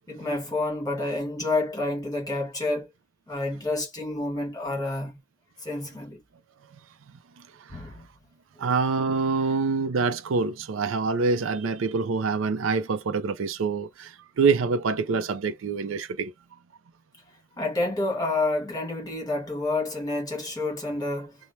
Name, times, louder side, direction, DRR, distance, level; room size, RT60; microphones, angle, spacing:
voice 1, 0.1-2.9 3.3-5.2 5.6-6.2 7.7-8.1 17.6-21.4, left 2 dB, 20° left, 1.6 m, -29 dB
voice 2, 7.4-7.9 8.6-16.3, right 4 dB, 75° right, 0.4 m, -26 dB
3.1 x 2.1 x 2.6 m
head